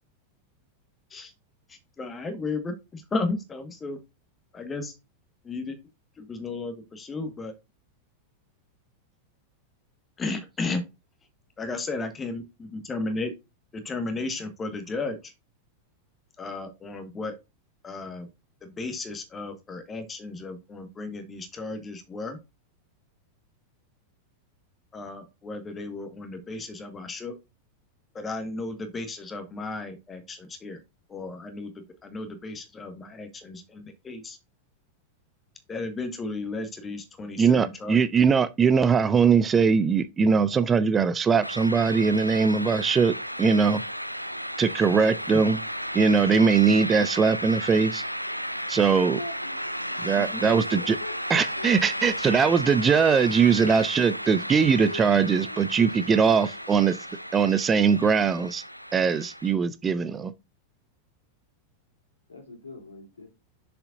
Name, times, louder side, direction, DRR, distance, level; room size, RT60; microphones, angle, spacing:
voice 1, 1.7-4.0 4.5-4.9 5.4-5.7 6.2-7.5 10.2-10.8 11.6-13.3 13.7-15.3 16.4-17.3 17.8-18.3 18.6-22.4 24.9-27.3 28.1-30.8 31.1-31.7 32.0-34.4 35.7-38.0 50.2-50.4, left 3 dB, 20° left, 1.6 m, -34 dB
voice 2, 37.4-43.8 44.6-45.6 45.9-48.0 48.7-49.2 50.0-50.9 51.3-57.0 57.3-58.6 58.9-60.3, right 5 dB, 20° right, 0.6 m, -21 dB
sound 1, 41.4-59.5, equal, 90° right, 0.5 m, -34 dB
voice 3, 49.1-49.5 49.9-50.3 50.7-51.7 54.8-56.4 62.3-63.3, left 3 dB, 75° left, 3.2 m, -42 dB
6.9 x 6.8 x 2.6 m
figure-of-eight pair, 90°, 0 cm